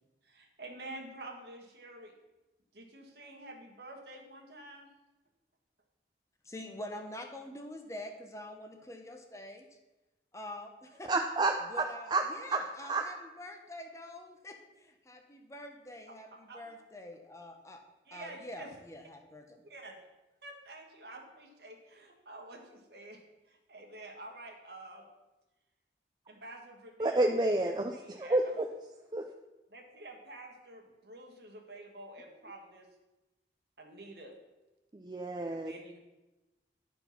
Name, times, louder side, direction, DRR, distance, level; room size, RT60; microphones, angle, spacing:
voice 1, 0.2-2.1 2.7-4.9 16.3-16.7 18.0-18.7 19.6-20.0 20.4-23.2 23.4-25.1 26.3-28.4 29.7-32.9 33.8-34.3 35.5-36.0, right 2 dB, 65° right, 2 dB, 1.5 m, -49 dB
voice 2, 6.4-9.7 10.3-11.1 11.7-17.8 18.1-19.6, left 1 dB, 15° left, 4 dB, 0.7 m, -46 dB
voice 3, 11.1-11.8 12.1-12.2 12.5-13.0 27.0-27.9 28.2-28.7 29.1-29.2 34.9-35.7, right 2 dB, 25° right, 3 dB, 0.4 m, -29 dB
11.0 x 4.6 x 5.7 m, 1.1 s
head